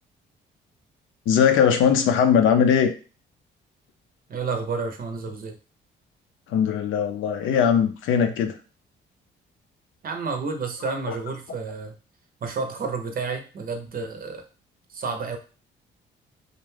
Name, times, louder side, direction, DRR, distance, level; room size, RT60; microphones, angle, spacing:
voice 1, 1.3-2.9 6.5-8.6 10.9-11.2, left 7 dB, 80° left, 7 dB, 0.5 m, -20 dB
voice 2, 4.3-5.6 10.0-11.9 12.4-14.5 14.9-15.4, right 4 dB, 45° right, 5 dB, 0.6 m, -30 dB
2.5 x 2.2 x 3.2 m, 0.35 s
cardioid pair, 90°, 20 cm